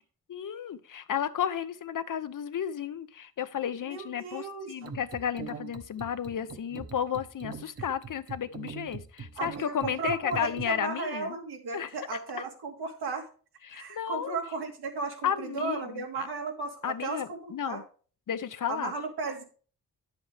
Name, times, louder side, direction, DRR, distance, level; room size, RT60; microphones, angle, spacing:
voice 1, 0.3-11.4 11.7-11.9 13.6-14.4 15.2-16.3 16.8-17.8 18.3-18.9, left 9 dB, 55° left, 12 dB, 0.8 m, -33 dB
voice 2, 3.9-4.7 9.4-13.3 13.7-17.8 18.7-19.4, right 4 dB, 85° right, 1 dB, 2.5 m, -35 dB
sound 1, 4.8-10.6, right 5 dB, 40° right, 1.1 m, -42 dB
10.0 x 7.7 x 3.3 m, 0.39 s
wide cardioid pair, 105°, 38 cm